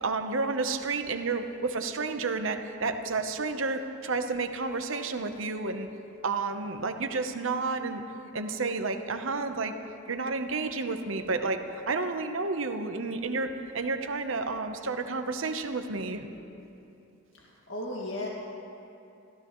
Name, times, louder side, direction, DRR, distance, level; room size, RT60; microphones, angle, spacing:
voice 1, 0.0-5.9 6.2-8.0 8.3-9.8 10.1-11.6 11.9-16.3, right 3 dB, 70° right, 7 dB, 0.9 m, -31 dB
voice 2, 17.3-18.3, left 1 dB, 65° left, -4 dB, 2.0 m, -36 dB
26.0 x 15.0 x 3.1 m, 2.8 s
head